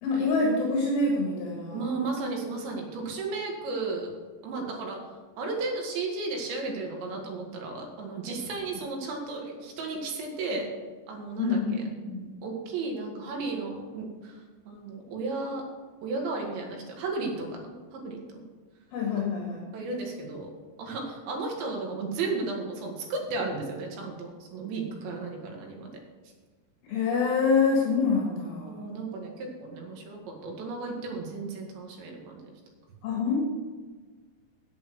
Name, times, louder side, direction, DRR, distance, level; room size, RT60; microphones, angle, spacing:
voice 1, 0.0-1.9 11.4-11.8 12.1-12.3 18.9-19.6 26.9-28.9 33.0-33.4, left 4 dB, 65° left, -2 dB, 3.3 m, -26 dB
voice 2, 1.7-4.1 4.4-5.0 5.4-10.7 11.1-11.6 12.4-14.4 14.7-15.6 16.0-18.4 19.7-20.5 20.8-25.9 28.7-32.4, right 3 dB, 85° right, 0 dB, 4.1 m, -34 dB
9.2 x 8.4 x 6.2 m, 1.4 s
omnidirectional pair, 5.0 m